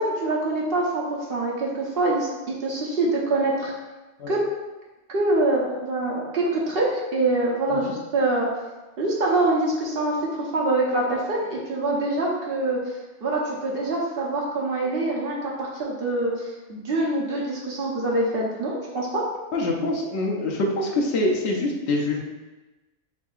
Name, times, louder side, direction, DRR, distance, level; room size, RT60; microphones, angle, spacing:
voice 1, 0.0-3.7 4.3-4.4 5.1-8.5 9.0-12.8 13.2-19.2, right 2 dB, 60° right, -3 dB, 1.1 m, -25 dB
voice 2, 19.5-22.2, left 2 dB, 80° left, -1 dB, 1.0 m, -25 dB
6.8 x 2.8 x 2.4 m, 1.1 s
omnidirectional pair, 1.1 m